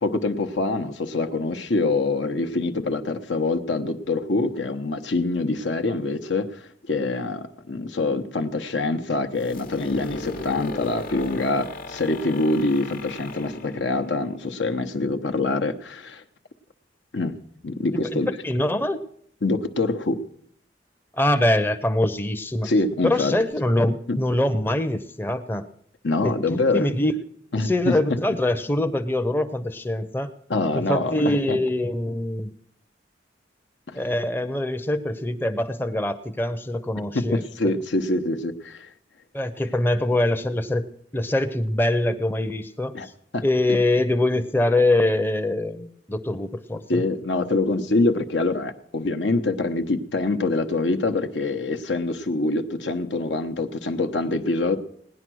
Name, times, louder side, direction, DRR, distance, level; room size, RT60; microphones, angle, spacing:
voice 1, 0.0-16.2 17.1-17.4 17.6-18.3 19.4-20.2 22.6-23.3 24.1-24.2 26.0-26.9 27.5-28.2 30.5-31.6 33.9-34.0 37.1-38.9 42.9-43.1 43.3-43.4 43.7-43.8 46.9-54.8, left 2 dB, 80° left, 5 dB, 0.9 m, -25 dB
sound 1, 9.4-15.1, left 2 dB, 50° left, 1.0 m, -37 dB
voice 2, 18.1-19.0 21.1-22.7 23.0-25.7 26.2-27.2 27.6-30.3 30.7-32.5 33.9-37.7 39.3-40.9 41.1-42.9 43.4-47.0, left 1 dB, 10° left, 7 dB, 0.6 m, -24 dB
17.5 x 10.0 x 6.2 m, 0.68 s
head